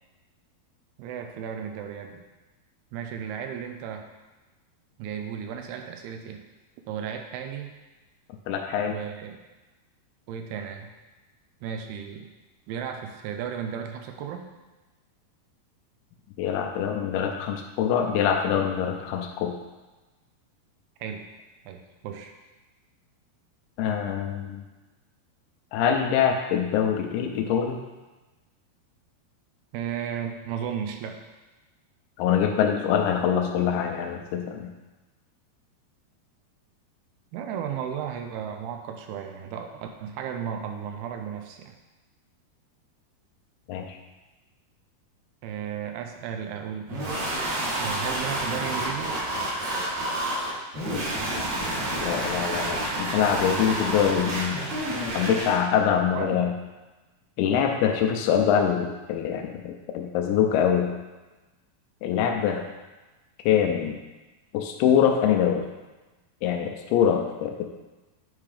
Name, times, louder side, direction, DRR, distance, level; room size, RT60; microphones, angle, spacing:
voice 1, 1.0-2.2 2.9-4.1 5.0-6.4 6.9-7.7 8.9-9.4 10.3-10.9 11.6-12.3 12.7-14.5 21.0-21.2 21.7-22.3 29.7-31.2 37.3-41.8 45.4-47.1 47.8-49.2 56.1-56.5, right 8 dB, 80° right, 5 dB, 2.6 m, -34 dB
voice 2, 8.5-9.0 16.4-19.6 23.8-24.6 25.7-27.8 32.2-34.7 43.7-44.0 50.8-51.0 52.0-54.6 55.1-56.5 57.4-60.9 62.0-62.7 63.5-64.0 64.5-65.6 66.4-67.6, left 8 dB, 80° left, 3 dB, 2.5 m, -24 dB
sound 1, 46.9-55.6, right 1 dB, 65° right, 4.0 m, -29 dB
9.3 x 3.6 x 4.9 m, 1.2 s
omnidirectional pair, 4.7 m